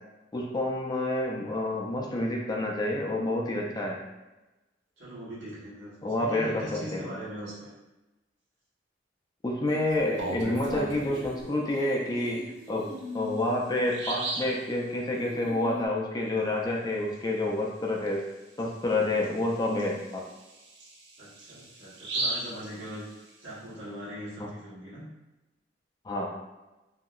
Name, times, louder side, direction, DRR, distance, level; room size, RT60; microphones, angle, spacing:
voice 1, 0.3-4.0 6.0-6.7 6.9-7.0 9.4-12.9 13.1-18.2 18.6-20.2 24.4-24.5 26.0-26.3, left 1 dB, 20° left, -1 dB, 0.4 m, -28 dB
voice 2, 5.0-7.7 18.9-19.4 21.2-25.1, equal, 85° right, -8 dB, 1.2 m, -41 dB
sound 1, 9.7-14.8 15.2-15.9, left 1 dB, 15° right, 0.7 m, -42 dB
Bird vocalization bird call bird song, 9.9-11.4 12.9-13.0 13.4-13.5 13.9-14.6 18.1-18.2 18.6-18.7 19.2-23.5, right 2 dB, 65° right, 0.5 m, -36 dB
2.8 x 2.7 x 2.4 m, 1.1 s
head